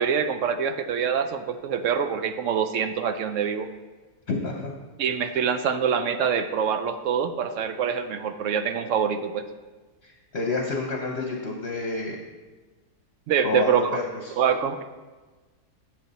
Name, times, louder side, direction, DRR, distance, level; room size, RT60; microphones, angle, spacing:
voice 1, 0.0-3.7 5.0-9.4 13.3-13.8 14.3-14.8, right 7 dB, 65° right, 9 dB, 0.8 m, -25 dB
voice 2, 4.3-4.7 10.0-12.2 13.4-14.4, left 3 dB, 50° left, 1 dB, 1.0 m, -29 dB
9.8 x 7.8 x 4.1 m, 1.3 s
omnidirectional pair, 1.6 m